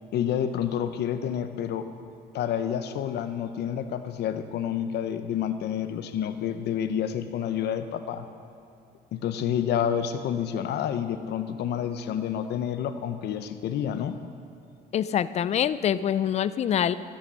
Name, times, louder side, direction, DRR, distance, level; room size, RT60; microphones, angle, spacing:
voice 1, 0.1-1.9 2.3-8.3 9.1-14.2, left 9 dB, 70° left, 10 dB, 0.7 m, -29 dB
voice 2, 14.9-16.9, left 9 dB, 40° left, 15 dB, 0.3 m, -25 dB
13.5 x 8.7 x 6.3 m, 2.4 s
cardioid pair, 135°, 18 cm